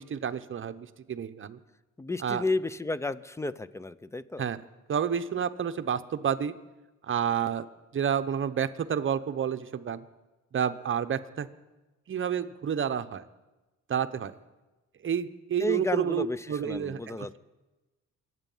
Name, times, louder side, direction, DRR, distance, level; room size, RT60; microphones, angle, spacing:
voice 1, 0.0-1.6 2.2-2.4 4.4-4.6 4.9-6.5 7.0-7.6 7.9-10.0 10.5-11.5 12.1-13.2 13.9-14.3 15.0-17.4, right 8 dB, 40° right, 11 dB, 0.8 m, -30 dB
voice 2, 2.0-4.4 15.6-17.4, left 2 dB, 10° left, 16 dB, 0.6 m, -32 dB
24.0 x 8.3 x 5.6 m, 1.1 s
cardioid pair, 90°, 30 cm